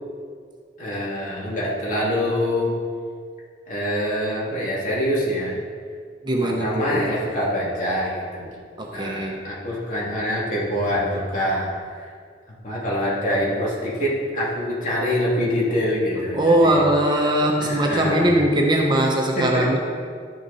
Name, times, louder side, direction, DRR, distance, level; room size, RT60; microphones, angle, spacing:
voice 1, 0.8-2.8 3.7-5.6 6.4-8.5 8.9-11.7 12.0-12.1 12.6-16.8 17.6-18.4 19.3-19.7, equal, 45° left, -6 dB, 2.6 m, -25 dB
voice 2, 6.2-7.1 8.8-9.4 16.3-19.8, right 1 dB, 25° right, 0 dB, 0.9 m, -20 dB
12.0 x 6.7 x 4.1 m, 2.1 s
head